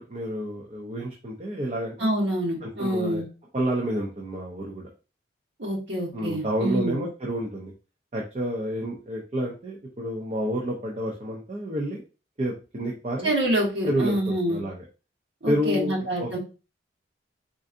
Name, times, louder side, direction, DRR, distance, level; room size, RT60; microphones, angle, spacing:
voice 1, 0.0-2.1 2.6-3.2 3.5-4.9 6.1-7.7 8.1-12.0 12.4-13.3 13.8-14.1 14.5-14.8 15.5-16.4, equal, 35° right, -1 dB, 0.5 m, -29 dB
voice 2, 2.0-3.3 5.6-7.0 13.2-14.6 15.4-16.4, right 1 dB, 70° right, -3 dB, 1.2 m, -26 dB
3.7 x 2.5 x 2.5 m, 0.32 s
head